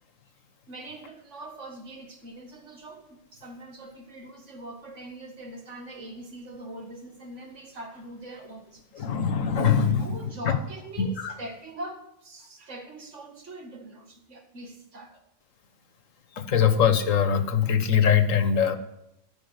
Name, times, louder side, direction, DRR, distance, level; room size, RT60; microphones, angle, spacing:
voice 1, 0.7-9.1 10.0-15.1, right 2 dB, 70° right, 4 dB, 2.1 m, -42 dB
voice 2, 9.0-10.2 10.4-10.6 11.0-11.3 16.4-18.8, left 7 dB, 80° left, 10 dB, 1.4 m, -22 dB
14.5 x 6.1 x 9.5 m, 0.87 s
omnidirectional pair, 1.3 m